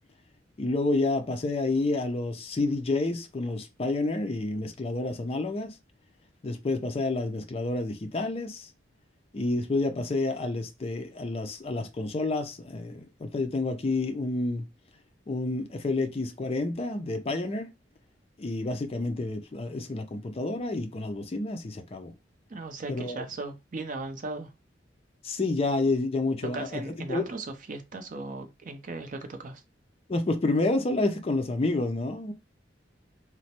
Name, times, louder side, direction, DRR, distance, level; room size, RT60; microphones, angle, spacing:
voice 1, 0.6-5.7 6.4-8.7 9.3-14.6 15.3-17.7 18.4-22.1 22.9-23.2 25.2-26.8 27.1-27.2 30.1-32.3, left 2 dB, 30° left, 0.4 m, -29 dB
voice 2, 22.5-24.5 26.5-29.6, right 3 dB, 45° right, 0.5 m, -37 dB
3.0 x 2.0 x 2.8 m
head